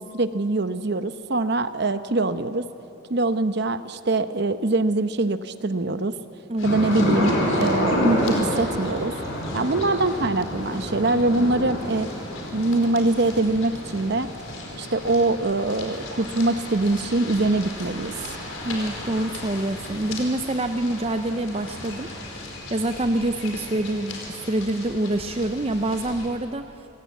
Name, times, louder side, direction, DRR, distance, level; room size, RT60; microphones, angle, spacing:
voice 1, 0.0-2.6 3.1-6.2 6.6-9.2 9.5-12.1 12.5-14.3 14.8-18.1, right 2 dB, 50° right, 11 dB, 0.9 m, -23 dB
sound 1, 6.6-26.3, left 2 dB, 75° left, 4.8 m, -38 dB
sound 2, 6.6-20.5 20.7-20.9 21.1-22.0, equal, 55° left, 6.5 m, -29 dB
voice 2, 18.6-22.1 22.7-26.6, right 1 dB, 30° right, 8 dB, 0.5 m, -26 dB
29.0 x 17.5 x 8.4 m, 2.9 s
head